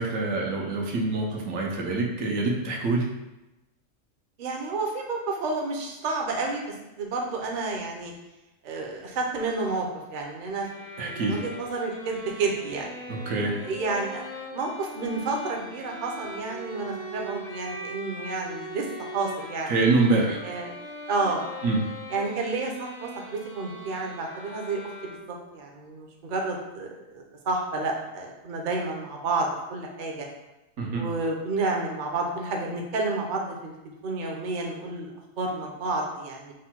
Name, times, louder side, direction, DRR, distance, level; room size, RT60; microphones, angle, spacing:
voice 1, 0.0-3.1 11.0-11.4 13.1-13.5 19.7-20.4 21.6-21.8 30.8-31.0, right 3 dB, 80° right, -1 dB, 1.2 m, -25 dB
voice 2, 4.4-8.1 8.6-10.7 10.9-12.9 13.5-14.2 14.5-19.7 20.4-20.7 21.1-21.5 22.1-24.8 25.3-30.3 30.9-35.1 35.4-36.5, right 3 dB, 45° right, 0 dB, 0.7 m, -30 dB
sound 1, 10.6-25.6, equal, 85° left, 1.8 m, -41 dB
4.8 x 2.2 x 4.3 m, 0.97 s
omnidirectional pair, 1.4 m